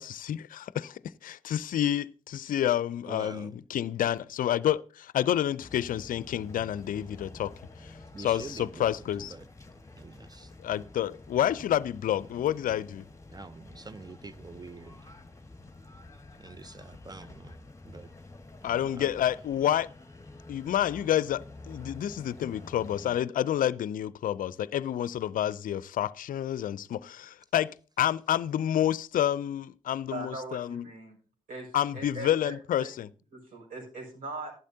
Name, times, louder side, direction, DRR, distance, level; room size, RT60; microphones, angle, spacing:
voice 1, 0.0-7.5 7.8-9.3 10.6-13.0 18.6-19.9 20.5-30.9 31.7-33.1, left 11 dB, 55° left, 0.5 m, -29 dB
voice 2, 3.1-3.5 8.1-9.0 9.3-9.4 10.0-10.5 13.3-15.0 16.4-17.5 17.8-18.1 18.7-19.1, right 3 dB, 25° right, 0.6 m, -45 dB
sound 1, 5.6-23.2, left 2 dB, 20° left, 1.7 m, -49 dB
voice 3, 30.1-31.2 31.5-32.9 33.3-34.5, right 2 dB, 55° right, 5.6 m, -40 dB
15.0 x 11.5 x 2.8 m
hypercardioid pair, 40°, 16 cm